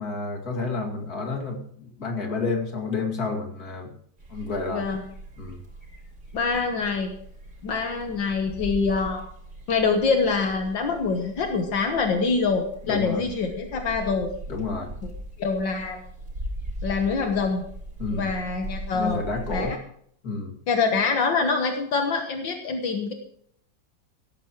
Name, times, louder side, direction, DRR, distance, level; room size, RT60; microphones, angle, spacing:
voice 1, 0.0-3.9 4.3-4.9 5.4-5.6 12.9-13.2 14.5-14.9 18.0-18.3 18.9-19.8 20.2-20.6, left 3 dB, 55° left, 2 dB, 2.8 m, -30 dB
sound 1, 4.2-19.7, right 1 dB, 55° right, 4.7 m, -40 dB
voice 2, 4.7-5.0 6.3-7.1 7.6-9.3 9.7-14.3 15.0-15.1 15.4-16.0 16.8-17.6 18.1-19.2 19.5-19.8 20.7-23.1, left 4 dB, 80° left, 4 dB, 2.0 m, -25 dB
17.0 x 14.0 x 3.1 m, 0.65 s
omnidirectional pair, 2.0 m